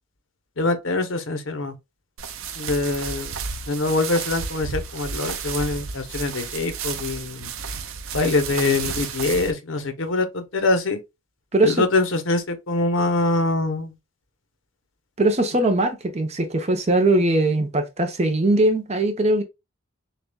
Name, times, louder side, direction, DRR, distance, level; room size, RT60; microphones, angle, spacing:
voice 1, 0.6-1.7 2.6-3.3 3.7-7.5 8.1-11.0 11.6-13.9, left 2 dB, 65° left, 0.8 m, -24 dB
sound 1, 2.2-9.5, right 6 dB, 80° right, 0.7 m, -32 dB
voice 2, 11.5-11.9 15.2-19.4, right 2 dB, 30° right, 0.7 m, -20 dB
6.7 x 2.3 x 2.3 m
head